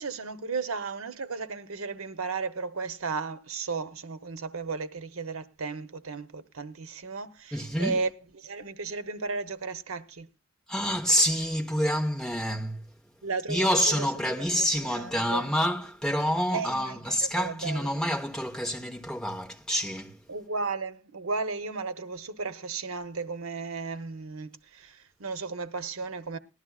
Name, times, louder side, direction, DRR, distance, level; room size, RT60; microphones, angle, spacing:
voice 1, 0.0-8.1 8.4-10.3 13.2-14.1 14.6-15.5 16.5-17.9 20.3-26.4, right 4 dB, 85° right, 0.9 m, -34 dB
voice 2, 7.5-8.0 10.7-12.9 13.5-20.2, equal, 5° left, 1.1 m, -27 dB
18.5 x 12.5 x 2.4 m
head